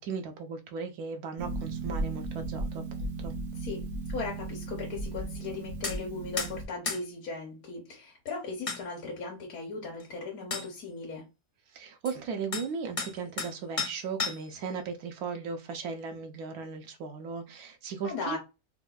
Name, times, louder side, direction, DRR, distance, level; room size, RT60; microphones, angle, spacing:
voice 1, 0.0-3.3 11.7-18.4, right 5 dB, 85° right, 1.1 m, -37 dB
Harp, 1.4-6.7, right 2 dB, 60° right, 0.5 m, -36 dB
voice 2, 4.1-11.2 18.0-18.4, left 4 dB, 70° left, 1.3 m, -38 dB
sound 1, 5.8-6.0 6.4-6.5 6.9-7.0 8.3-8.4 8.7-8.8 10.0-10.1 10.5-10.7 12.1-12.2 12.5-12.7 13.0-13.5 13.8-14.6, left 4 dB, 45° left, 0.4 m, -33 dB
4.3 x 2.2 x 2.3 m
omnidirectional pair, 1.5 m